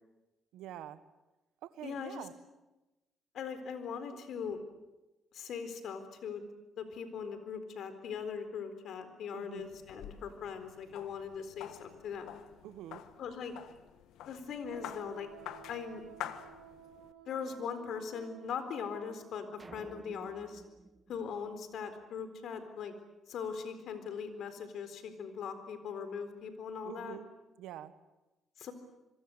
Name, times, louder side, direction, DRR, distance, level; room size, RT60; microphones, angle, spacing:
voice 1, 0.5-1.0 1.6-2.3 9.3-9.7 12.6-13.0 26.8-27.2 27.6-27.9, right 12 dB, 90° right, 13 dB, 1.5 m, -46 dB
voice 2, 1.8-2.3 3.3-4.6 5.3-6.4 6.8-12.4 13.2-13.5 14.3-15.3 15.7-16.0 17.3-20.6 21.1-22.9 23.3-27.2 28.6-28.7, left 6 dB, 70° left, 10 dB, 4.1 m, -40 dB
sound 1, 9.6-17.1, left 11 dB, 85° left, 1.5 m, -48 dB
Wind instrument woodwind instrument, 14.6-19.3, right 9 dB, 70° right, 6.4 m, -55 dB
sound 2, 19.6-22.1, right 3 dB, 25° right, 1.8 m, -54 dB
27.0 x 22.5 x 8.0 m, 1.0 s
cardioid pair, 90°, 0 cm